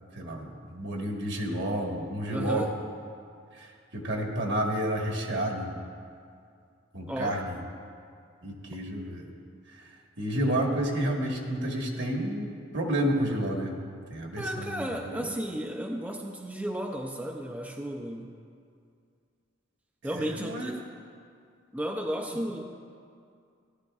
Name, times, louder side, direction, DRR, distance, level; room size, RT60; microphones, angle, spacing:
voice 1, 0.1-2.7 3.5-5.8 6.9-7.6 8.4-9.3 9.8-13.8 14.1-15.3 20.2-20.7, right 1 dB, 65° right, 1 dB, 1.4 m, -30 dB
voice 2, 2.3-2.7 7.1-7.4 14.4-18.3 20.0-20.8 21.7-22.7, equal, 5° right, 1 dB, 0.4 m, -33 dB
15.5 x 11.5 x 2.4 m, 2.3 s
head